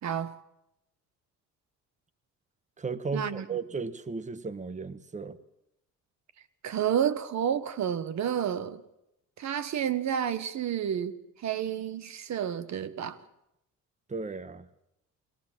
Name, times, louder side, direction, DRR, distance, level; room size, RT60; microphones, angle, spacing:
voice 1, 0.0-0.4 3.1-3.4 6.6-8.8 9.4-13.2, right 9 dB, 65° right, 12 dB, 1.4 m, -30 dB
voice 2, 2.8-5.4 14.1-14.7, right 4 dB, 25° right, 12 dB, 1.3 m, -35 dB
21.5 x 19.0 x 7.5 m, 0.81 s
cardioid pair, 90°, 30 cm